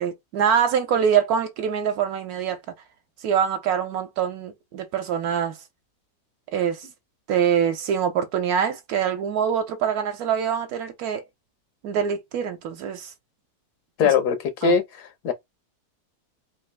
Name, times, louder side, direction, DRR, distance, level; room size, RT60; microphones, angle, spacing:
voice 1, 0.0-2.6 3.2-5.6 6.5-6.9 7.3-11.2 11.8-13.1 14.0-14.1 14.6-14.7, right 8 dB, 80° right, 1.1 m, -24 dB
voice 2, 14.0-15.3, left 6 dB, 90° left, 1.5 m, -22 dB
3.5 x 2.5 x 3.3 m
omnidirectional pair, 1.7 m